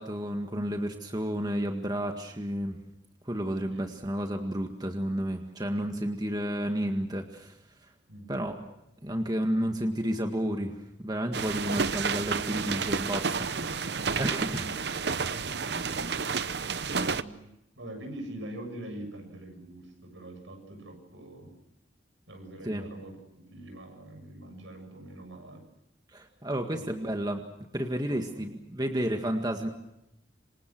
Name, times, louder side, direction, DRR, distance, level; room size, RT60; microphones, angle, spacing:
voice 1, 0.0-2.8 3.3-7.5 8.3-8.6 9.0-10.7 11.0-13.5 14.2-14.7 15.7-16.2 22.6-22.9 26.1-27.4 27.7-29.7, equal, 20° right, 4 dB, 1.9 m, -31 dB
voice 2, 8.1-8.4 13.5-14.3 14.6-16.0 16.8-17.5 17.8-21.5 22.3-25.6 26.7-26.8 28.1-28.4, right 1 dB, 85° right, 5 dB, 7.7 m, -44 dB
sound 1, 11.3-17.2, right 5 dB, 60° right, 0.8 m, -30 dB
27.5 x 25.5 x 6.2 m, 0.84 s
head